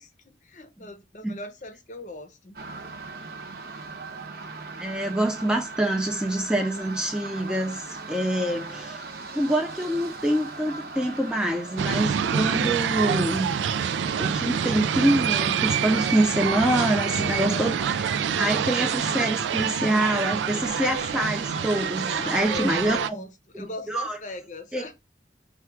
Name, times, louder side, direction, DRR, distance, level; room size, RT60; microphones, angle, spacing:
voice 1, 0.0-2.6 8.5-8.8 17.2-17.7 22.1-24.9, left 2 dB, 45° left, 0.7 m, -39 dB
sound 1, 2.5-22.4, right 3 dB, 55° right, 0.7 m, -39 dB
voice 2, 4.8-9.0 9.3-13.5 14.2-18.1 18.3-23.2 23.5-24.2 24.7-24.9, right 1 dB, 5° right, 0.4 m, -26 dB
sound 2, 11.8-23.1, right 7 dB, 90° right, 0.3 m, -26 dB
4.6 x 2.3 x 4.5 m
head